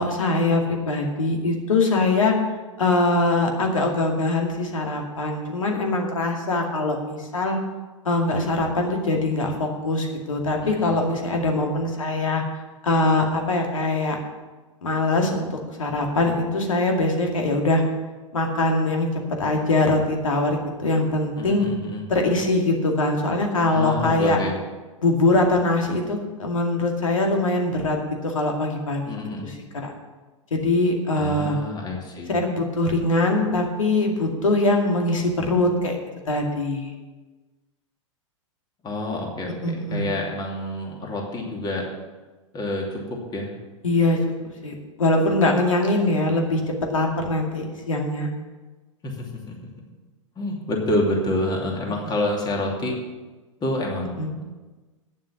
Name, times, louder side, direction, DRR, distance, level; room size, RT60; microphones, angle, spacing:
voice 1, 0.0-2.3 2.8-7.6 8.0-12.4 12.8-14.2 14.8-17.8 18.3-19.1 19.4-21.6 22.1-24.4 25.0-29.1 29.4-29.6 29.8-29.9 30.5-31.6 32.3-36.0 36.3-36.9 39.6-40.0 43.8-44.2 44.6-46.6 46.9-48.3 54.2-54.3, left 2 dB, 85° left, 2 dB, 2.3 m, -22 dB
voice 2, 21.4-22.0 23.7-24.6 29.0-29.5 31.2-32.4 38.8-41.8 42.5-43.5 49.0-49.6 50.4-52.9 53.6-54.5, left 1 dB, 25° left, 0 dB, 2.7 m, -28 dB
9.3 x 7.3 x 8.5 m, 1.2 s
hypercardioid pair, 105°, 17 cm